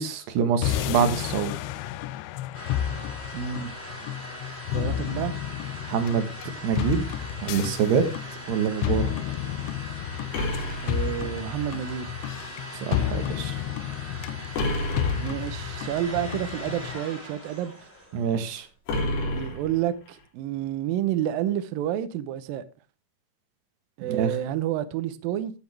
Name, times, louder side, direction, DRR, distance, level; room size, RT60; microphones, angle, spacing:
voice 1, 0.0-1.5 5.9-6.3 6.6-7.0 7.4-8.0 8.5-9.0 12.9-13.5 18.1-18.6 24.1-24.3, right 7 dB, 70° right, 3.3 m, -25 dB
sound 1, 0.6-17.0, left 11 dB, 85° left, 2.9 m, -31 dB
sound 2, 2.5-18.6, equal, 5° left, 5.2 m, -41 dB
voice 2, 3.3-3.7 4.7-5.3 10.8-12.1 15.2-17.7 19.3-22.6 24.0-25.5, right 11 dB, 85° right, 2.0 m, -29 dB
sound 3, 10.3-11.7 14.5-15.7 18.9-20.2, left 1 dB, 65° left, 5.2 m, -30 dB
14.5 x 8.6 x 3.3 m
omnidirectional pair, 5.2 m